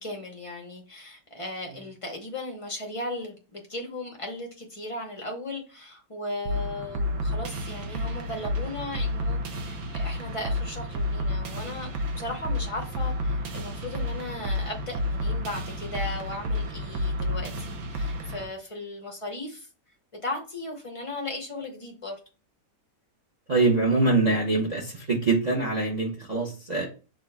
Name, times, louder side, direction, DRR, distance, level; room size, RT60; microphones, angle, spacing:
voice 1, 0.0-19.7 20.2-22.2, left 2 dB, 45° left, 0.4 m, -36 dB
sound 1, 6.5-18.5, left 1 dB, 65° right, 1.1 m, -30 dB
voice 2, 23.5-26.9, right 3 dB, 40° right, 0.5 m, -24 dB
6.2 x 2.4 x 3.3 m
omnidirectional pair, 1.8 m